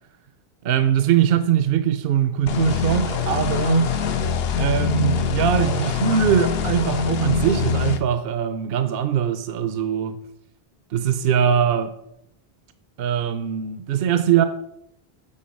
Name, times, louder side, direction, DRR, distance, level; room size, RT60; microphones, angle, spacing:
voice 1, 0.6-3.9 4.6-10.2 10.9-11.9 13.0-14.4, right 9 dB, 70° right, 0.8 m, -21 dB
sound 1, 2.5-8.0, left 6 dB, 75° left, 0.9 m, -23 dB
7.6 x 4.1 x 5.2 m
omnidirectional pair, 1.0 m